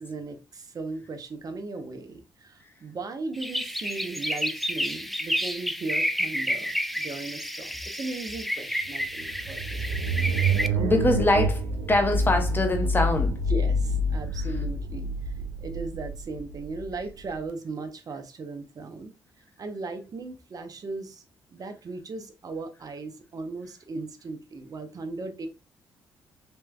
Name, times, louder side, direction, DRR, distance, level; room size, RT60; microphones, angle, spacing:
voice 1, 0.0-9.8 13.5-15.3 15.6-19.1 19.6-21.2 21.5-25.5, right 3 dB, 45° right, 0.8 m, -37 dB
sound 1, 3.3-10.7, equal, ahead, 0.4 m, -30 dB
sound 2, 9.0-17.4, right 1 dB, 80° right, 0.5 m, -27 dB
voice 2, 10.7-13.4, left 2 dB, 25° left, 1.0 m, -24 dB
3.2 x 3.0 x 2.3 m
supercardioid pair, 55°, 9 cm